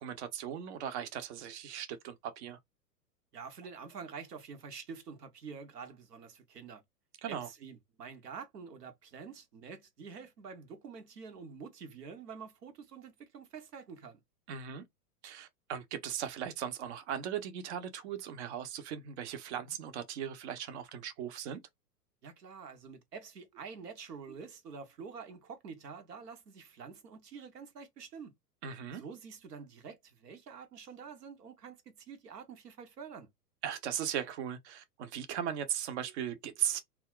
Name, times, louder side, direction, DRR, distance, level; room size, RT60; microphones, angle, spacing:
voice 1, 0.0-2.6 7.2-7.5 14.5-14.8 15.2-21.6 28.6-29.0 33.6-36.8, right 9 dB, 45° right, 0.7 m, -38 dB
voice 2, 3.3-6.8 7.3-14.2 22.2-28.3 28.9-33.3, right 5 dB, 75° right, 0.9 m, -47 dB
2.3 x 2.1 x 3.7 m
figure-of-eight pair, 105°, 48 cm